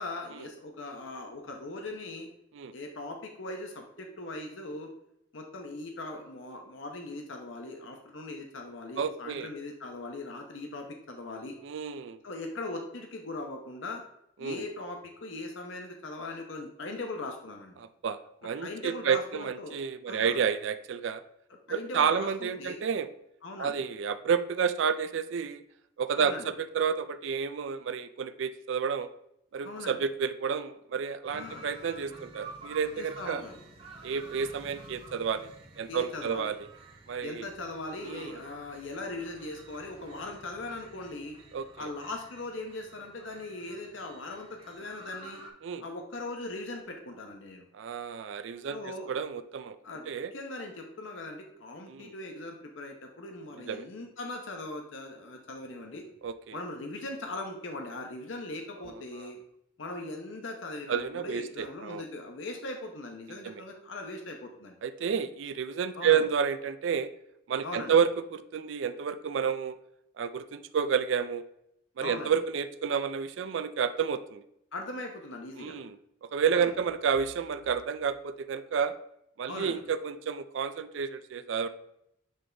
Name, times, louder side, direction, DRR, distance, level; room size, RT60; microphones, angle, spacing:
voice 1, 0.0-2.3 2.7-4.9 5.3-11.6 12.2-14.0 14.4-17.8 18.6-19.7 20.1-20.4 21.7-22.8 23.4-23.8 26.2-26.5 29.6-30.0 31.3-31.7 33.0-33.5 35.9-36.5 37.2-41.4 41.8-45.4 45.8-47.7 48.7-49.1 49.8-56.0 56.5-59.4 59.8-64.7 65.9-66.2 67.6-67.9 72.0-72.3 74.7-75.8 76.5-76.7 79.5-79.8, left 2 dB, 70° left, 3 dB, 0.8 m, -40 dB
voice 2, 9.0-9.5 11.6-12.2 14.4-14.6 17.8-21.2 21.7-23.1 23.6-25.6 26.0-29.1 29.5-33.4 34.0-36.6 37.1-37.5 38.0-38.3 41.5-41.9 45.6-45.8 47.7-49.8 50.1-50.3 51.9-52.1 53.7-53.8 56.2-56.6 58.8-59.3 60.9-62.0 63.4-63.6 64.8-67.1 67.5-69.8 70.2-71.4 72.0-74.4 75.6-76.0 76.2-78.9 79.4-81.7, right 6 dB, 70° right, 12 dB, 0.4 m, -30 dB
sound 1, 31.2-45.5, right 2 dB, 30° right, 0.9 m, -50 dB
7.8 x 3.4 x 3.8 m, 0.78 s
head